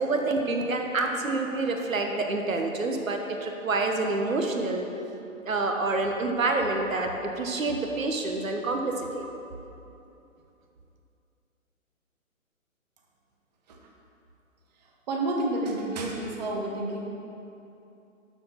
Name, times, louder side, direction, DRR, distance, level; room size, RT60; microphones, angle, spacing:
voice 1, 0.0-4.9 5.5-9.2, right 3 dB, 70° right, 3 dB, 1.2 m, -27 dB
voice 2, 15.1-17.1, right 2 dB, 30° right, 0 dB, 1.0 m, -29 dB
12.5 x 4.9 x 5.7 m, 2.9 s
figure-of-eight pair, 140°, 42 cm